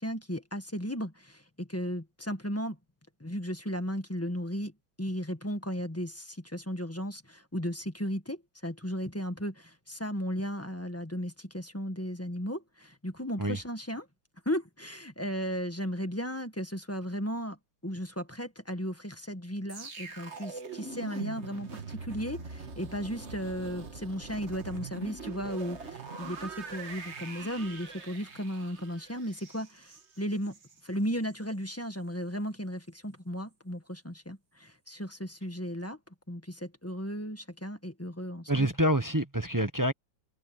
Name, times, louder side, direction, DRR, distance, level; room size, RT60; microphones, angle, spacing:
voice 1, 0.0-2.8 3.2-4.7 5.0-14.1 14.4-17.6 17.8-30.6 30.8-36.0 36.3-38.7, equal, 10° left, 1.3 m, -35 dB
sound 1, 19.7-30.8 31.1-31.3, right 4 dB, 35° right, 1.8 m, -43 dB
voice 2, 38.5-39.9, right 1 dB, 15° right, 0.7 m, -27 dB
omnidirectional pair, 2.2 m